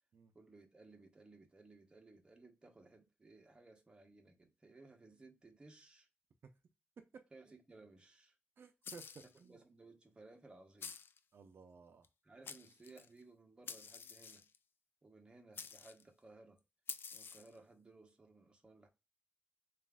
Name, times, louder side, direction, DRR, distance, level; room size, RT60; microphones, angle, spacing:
voice 1, 0.3-6.1 7.3-8.4 9.4-10.9 12.2-14.4 15.0-16.6 17.1-18.9, right 3 dB, 25° right, 0.9 m, -60 dB
voice 2, 8.6-9.6 11.3-12.1, right 5 dB, 80° right, 0.5 m, -56 dB
sound 1, 8.8-9.4 10.8-11.2 12.0-12.1 12.4-13.1 13.7-14.6 15.5-16.0 16.9-17.6, left 6 dB, 70° left, 0.4 m, -49 dB
7.1 x 2.5 x 2.3 m
wide cardioid pair, 180°, 4 cm